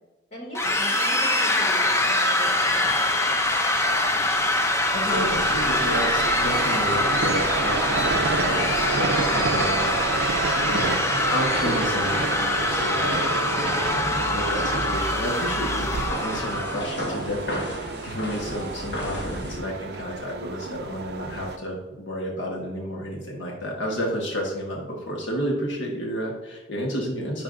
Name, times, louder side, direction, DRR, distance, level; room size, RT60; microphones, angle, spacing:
voice 1, 0.3-3.4 12.3-12.7, equal, 35° left, -1 dB, 2.1 m, -39 dB
sound 1, 0.6-16.9, left 1 dB, 15° left, 0.5 m, -24 dB
voice 2, 4.9-11.0 11.3-12.2 12.6-27.4, equal, 80° left, -1 dB, 1.2 m, -31 dB
sound 2, 5.1-21.6, right 4 dB, 55° right, 0.4 m, -30 dB
sound 3, 13.9-19.6, equal, 60° left, 1.5 m, -34 dB
10.5 x 5.4 x 2.6 m, 1.1 s
head